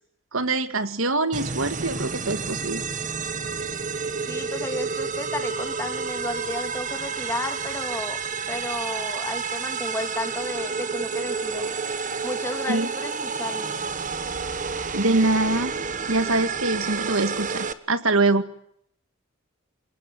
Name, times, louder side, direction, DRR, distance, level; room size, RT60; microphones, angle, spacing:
voice 1, 0.3-2.8 12.7-12.9 14.9-15.7 16.1-18.5, right 2 dB, 75° right, 11 dB, 2.1 m, -24 dB
sound 1, 1.3-17.7, right 5 dB, 40° right, 1.5 m, -30 dB
voice 2, 4.3-8.2 8.5-11.7 12.2-13.8, left 1 dB, 15° left, 6 dB, 3.0 m, -33 dB
28.5 x 19.0 x 9.7 m, 0.71 s
head